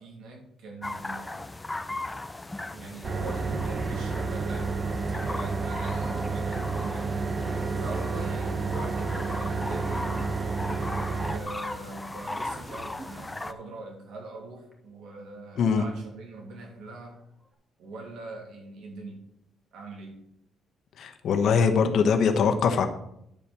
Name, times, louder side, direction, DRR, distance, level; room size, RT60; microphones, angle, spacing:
voice 1, 0.0-1.4 2.7-4.8 5.1-7.4 7.8-10.6 11.3-17.2 17.8-19.3 19.7-20.2, right 2 dB, 80° right, 1 dB, 2.7 m, -42 dB
sound 1, 0.8-13.5, left 2 dB, 15° left, 0.7 m, -38 dB
sound 2, 3.0-11.4, right 4 dB, 40° right, 1.2 m, -30 dB
Cough, 3.3-3.4 3.6-10.9 12.0-13.1 14.7-14.8 15.8-16.1 16.6-16.7 17.1-17.5, right 1 dB, 20° right, 2.5 m, -46 dB
voice 2, 21.0-22.9, left 6 dB, 70° left, 7 dB, 1.2 m, -22 dB
10.5 x 4.5 x 6.9 m, 0.76 s
cardioid pair, 90°, 0 cm